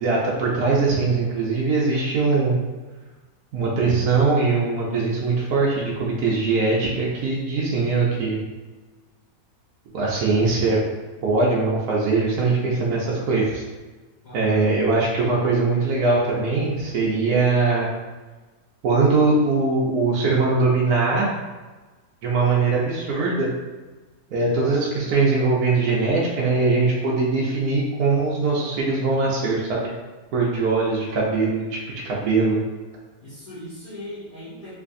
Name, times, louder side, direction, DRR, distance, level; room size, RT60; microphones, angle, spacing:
voice 1, 0.0-2.6 3.5-8.4 9.9-10.8 11.2-13.6 14.3-17.9 18.8-21.3 22.2-23.5 24.3-29.9 30.3-31.8 32.0-32.6, right 3 dB, 70° right, -5 dB, 1.1 m, -21 dB
voice 2, 14.2-14.6 33.2-34.7, left 1 dB, 35° left, -13 dB, 1.0 m, -38 dB
3.4 x 3.1 x 2.5 m, 1.3 s
omnidirectional pair, 1.8 m